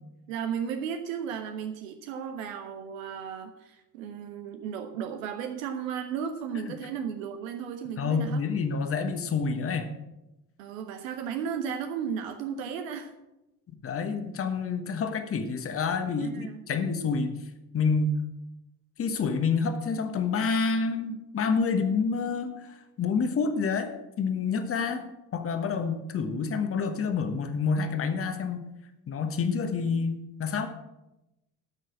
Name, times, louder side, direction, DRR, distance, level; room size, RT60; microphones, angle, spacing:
voice 1, 0.3-8.4 10.6-13.1 16.2-16.6 17.0-17.1, right 7 dB, 60° right, 7 dB, 0.9 m, -35 dB
voice 2, 8.0-9.9 13.8-17.3 17.7-18.2 19.0-22.5 23.0-25.0 25.3-28.6 29.1-30.7, left 5 dB, 30° left, 8 dB, 1.3 m, -28 dB
13.0 x 6.2 x 6.2 m, 0.94 s
figure-of-eight pair, 60°, 45 cm